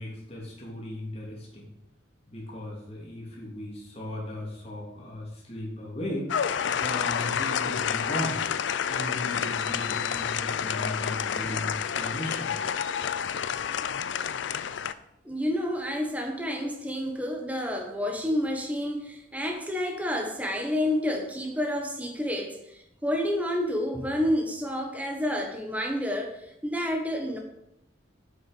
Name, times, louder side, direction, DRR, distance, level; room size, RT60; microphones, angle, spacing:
voice 1, 0.0-1.7 2.3-6.3 6.7-8.4 8.9-12.5, left 1 dB, 30° left, -3 dB, 2.7 m, -36 dB
sound 1, 6.3-14.9, left 8 dB, 70° left, 0.4 m, -29 dB
voice 2, 15.2-27.4, left 1 dB, 10° right, 2 dB, 1.2 m, -29 dB
8.0 x 6.5 x 5.1 m, 0.82 s
head